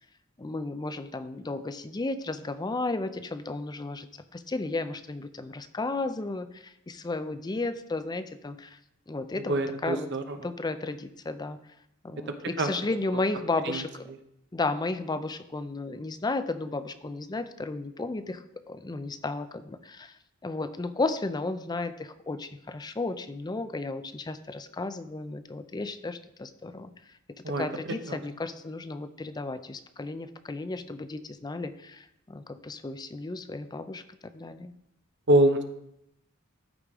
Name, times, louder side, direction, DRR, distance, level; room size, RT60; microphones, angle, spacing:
voice 1, 0.4-4.1 4.3-8.8 9.1-10.1 10.4-11.6 12.0-14.1 14.5-26.9 27.5-34.0 34.3-34.7, left 3 dB, 20° left, 12 dB, 0.4 m, -33 dB
voice 2, 9.3-10.4 12.3-12.7 13.1-13.2 13.6-13.8 27.4-27.6 28.1-28.2 35.3-35.6, right 1 dB, 55° right, 7 dB, 0.9 m, -25 dB
13.5 x 5.0 x 3.7 m, 0.82 s
head